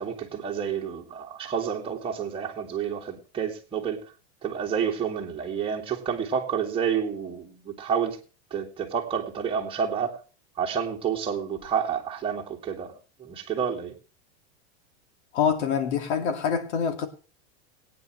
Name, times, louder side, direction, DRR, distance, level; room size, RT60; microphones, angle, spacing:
voice 1, 0.0-4.0 4.4-8.2 8.5-10.2 10.6-12.9 13.2-13.9, right 7 dB, 15° right, 2.4 m, -29 dB
voice 2, 15.3-17.1, left 7 dB, 90° left, 2.4 m, -25 dB
21.0 x 9.3 x 3.2 m
supercardioid pair, 150°, 33 cm